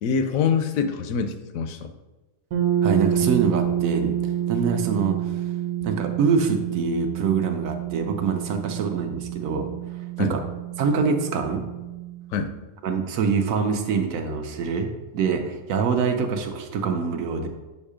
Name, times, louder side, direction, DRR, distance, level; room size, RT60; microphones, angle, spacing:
voice 1, 0.0-1.9 5.8-5.9 10.2-10.4 12.3-12.5, left 6 dB, 75° left, 9 dB, 1.0 m, -25 dB
sound 1, 2.5-12.3, right 10 dB, 90° right, 1.3 m, -28 dB
voice 2, 2.8-4.1 4.5-5.4 5.8-9.7 10.2-10.4 10.8-11.6 12.8-14.9 15.1-17.5, right 5 dB, 70° right, 5 dB, 1.0 m, -25 dB
7.1 x 2.7 x 4.8 m, 1.1 s
omnidirectional pair, 1.5 m